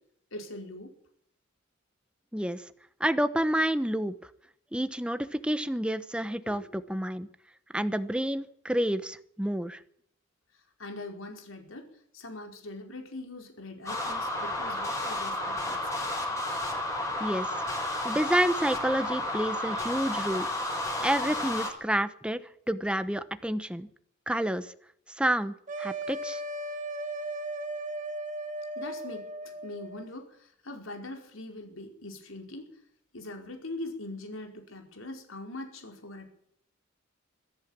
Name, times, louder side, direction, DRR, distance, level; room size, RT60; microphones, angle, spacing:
voice 1, 0.3-0.9 6.5-6.6 10.8-11.9 12.1-15.9 28.7-32.8 33.1-36.3, left 2 dB, 75° left, 3 dB, 4.8 m, -42 dB
voice 2, 2.3-2.6 3.0-4.1 4.7-7.3 7.7-9.8 17.2-17.6 18.0-20.5 21.0-23.9 24.3-24.7 25.2-26.4, right 1 dB, 5° right, 12 dB, 1.0 m, -29 dB
sound 1, 13.9-21.7, left 1 dB, 15° left, 5.3 m, -32 dB
sound 2, 25.7-30.1, right 1 dB, 40° right, 2.1 m, -36 dB
21.0 x 14.5 x 8.8 m, 0.68 s
head